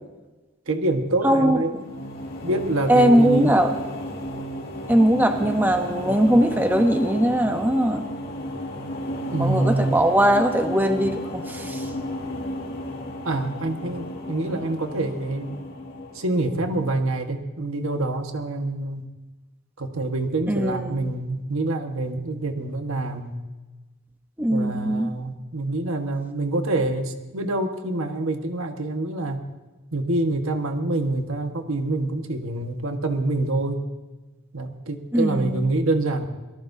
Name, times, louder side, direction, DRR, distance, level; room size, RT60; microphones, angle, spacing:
voice 1, 0.7-1.9 2.4-3.5 9.2-10.0 13.2-15.6 16.1-19.0 19.8-23.4 24.5-29.4 29.9-33.8 34.5-36.3, right 2 dB, 85° right, 5 dB, 1.5 m, -26 dB
voice 2, 1.2-1.6 2.9-3.7 4.9-8.1 9.4-11.9 20.5-21.1 24.4-25.1 35.1-35.6, right 1 dB, 10° right, 5 dB, 0.8 m, -20 dB
sound 1, 1.5-16.9, left 1 dB, 50° left, 2.0 m, -33 dB
26.5 x 19.0 x 2.8 m, 1.2 s
head